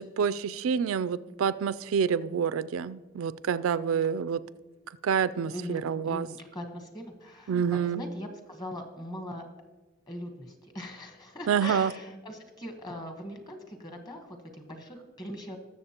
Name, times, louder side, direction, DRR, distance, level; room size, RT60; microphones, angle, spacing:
voice 1, 0.0-4.4 5.0-6.3 7.5-8.0 11.5-11.9, right 7 dB, 85° right, 15 dB, 0.4 m, -27 dB
voice 2, 5.5-9.5 10.1-15.6, equal, 20° left, 4 dB, 1.2 m, -41 dB
20.0 x 6.9 x 2.9 m, 1.2 s
head